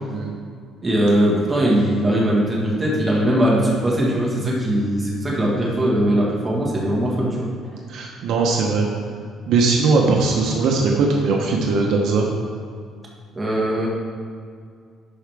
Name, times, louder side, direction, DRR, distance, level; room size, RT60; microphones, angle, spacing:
voice 1, 0.8-7.5 13.3-13.9, right 1 dB, 15° right, -5 dB, 1.6 m, -20 dB
voice 2, 7.9-8.9 9.5-12.3, right 3 dB, 60° right, 0 dB, 0.8 m, -19 dB
11.0 x 4.9 x 3.5 m, 2.1 s
cardioid pair, 160°, 0 cm